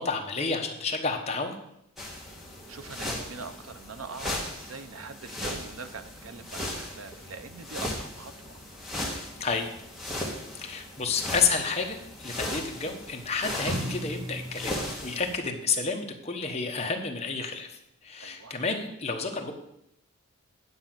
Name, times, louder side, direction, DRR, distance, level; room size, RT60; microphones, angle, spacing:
voice 1, 0.0-1.6 9.4-9.8 10.6-19.5, left 4 dB, 30° left, 3 dB, 1.1 m, -30 dB
sound 1, 2.0-15.4, left 1 dB, ahead, 1.7 m, -37 dB
voice 2, 2.7-8.6 18.2-18.5, right 4 dB, 70° right, 10 dB, 0.7 m, -43 dB
sound 2, 13.7-15.6, equal, 15° right, 2.1 m, -37 dB
9.7 x 5.1 x 7.5 m, 0.79 s
head